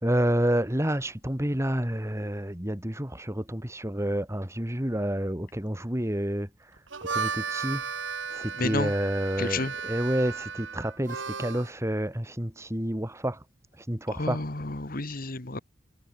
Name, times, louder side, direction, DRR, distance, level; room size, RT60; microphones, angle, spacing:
voice 1, 0.0-6.7 7.0-7.8 8.3-13.4 13.8-14.4, right 1 dB, 15° right, 2.6 m, -29 dB
Harmonica, 6.8-11.7, right 6 dB, 80° right, 1.9 m, -34 dB
voice 2, 8.6-8.9 9.4-9.7 14.1-15.6, left 2 dB, 50° left, 1.8 m, -31 dB
head